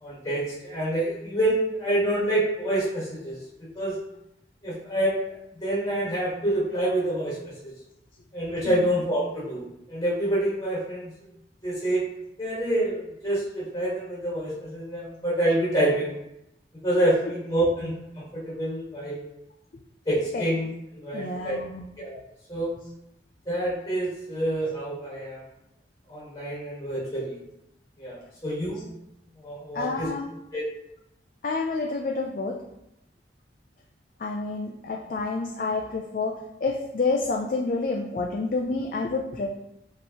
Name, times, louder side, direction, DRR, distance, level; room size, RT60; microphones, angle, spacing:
voice 1, 0.0-3.4 3.7-4.0 4.6-7.4 7.6-7.7 8.3-11.1 11.6-12.0 12.4-16.1 16.8-19.2 20.0-20.7 20.9-21.6 22.0-22.2 22.5-22.7 23.4-25.4 26.1-27.4 28.0-28.8 29.4-30.1 30.5-30.6, right 1 dB, 20° left, -7 dB, 1.4 m, -27 dB
voice 2, 21.1-21.8 29.7-30.3 31.4-32.6 34.2-39.5, left 3 dB, 50° left, 1 dB, 0.4 m, -29 dB
5.3 x 3.0 x 2.8 m, 0.85 s
head